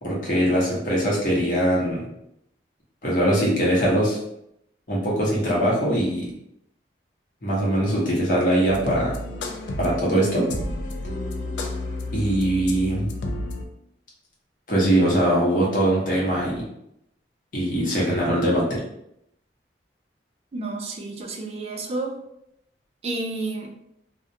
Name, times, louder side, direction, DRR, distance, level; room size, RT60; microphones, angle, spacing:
voice 1, 0.0-2.1 3.0-4.2 4.9-6.3 7.4-9.1 9.8-10.5 12.1-13.1 14.7-16.6 17.5-18.8, right 1 dB, 50° left, -5 dB, 0.8 m, -22 dB
sound 1, 8.7-13.6, left 1 dB, 90° left, 0.4 m, -31 dB
voice 2, 20.5-22.2 23.0-23.7, right 2 dB, 35° right, 2 dB, 0.3 m, -30 dB
2.4 x 2.1 x 2.7 m, 0.78 s
head